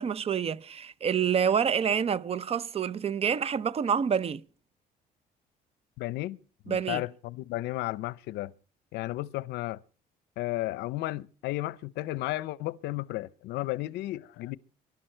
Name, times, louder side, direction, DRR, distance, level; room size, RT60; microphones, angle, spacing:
voice 1, 0.0-4.4 6.7-7.0, right 7 dB, 35° right, 0.7 m, -27 dB
voice 2, 6.0-6.4 6.6-8.5 8.9-9.8 10.4-14.6, left 17 dB, 85° left, 0.7 m, -33 dB
24.0 x 12.0 x 4.5 m
cardioid pair, 110°, 17 cm